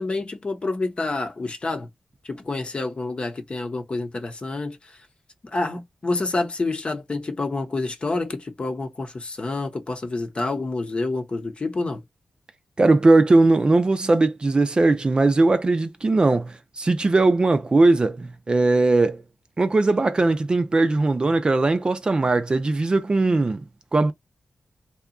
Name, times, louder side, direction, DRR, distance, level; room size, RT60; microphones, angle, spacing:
voice 1, 0.0-1.9 2.2-5.0 5.4-12.0, left 3 dB, 45° left, 0.8 m, -28 dB
voice 2, 12.8-19.2 19.6-23.6 23.9-24.1, right 2 dB, 40° right, 0.5 m, -19 dB
2.8 x 2.3 x 2.5 m
cardioid pair, 55°, 3 cm